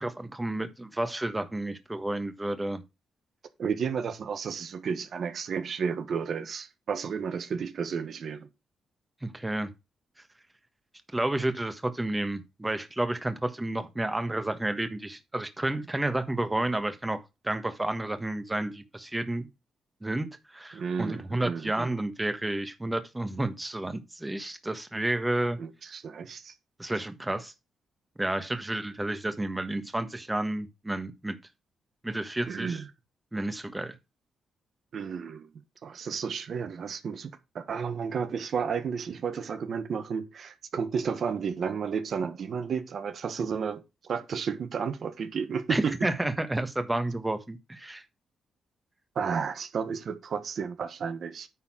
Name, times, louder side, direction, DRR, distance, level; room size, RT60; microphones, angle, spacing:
voice 1, 0.0-2.8 9.2-9.7 11.1-19.5 20.0-25.6 25.9-26.0 26.8-27.5 28.2-31.4 32.0-32.8 33.3-34.0 45.7-48.0, right 1 dB, 15° right, 1.3 m, -31 dB
voice 2, 3.6-8.5 20.7-21.9 25.6-26.5 32.5-32.9 34.9-35.5 35.8-46.0 49.1-51.5, right 6 dB, 65° right, 1.1 m, -32 dB
9.5 x 4.2 x 6.1 m
supercardioid pair, 65°, 0 cm